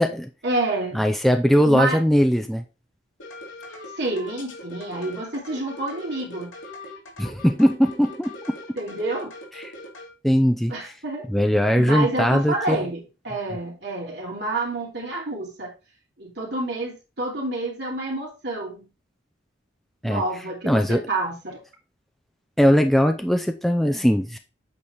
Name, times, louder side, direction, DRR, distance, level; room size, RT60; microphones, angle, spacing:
voice 1, 0.4-1.0 1.6-2.0 4.0-6.5 8.7-9.3 10.7-11.2 11.7-15.7 16.2-18.8 20.0-21.6, right 2 dB, 60° right, -2 dB, 3.0 m, -28 dB
voice 2, 0.9-2.6 7.2-8.6 9.6-9.7 10.2-10.7 11.3-12.8 20.0-20.2 20.7-21.0 22.6-24.4, equal, ahead, 5 dB, 0.6 m, -20 dB
sound 1, 3.2-10.1, left 1 dB, 85° left, 2.7 m, -40 dB
8.7 x 4.1 x 4.6 m, 0.30 s
head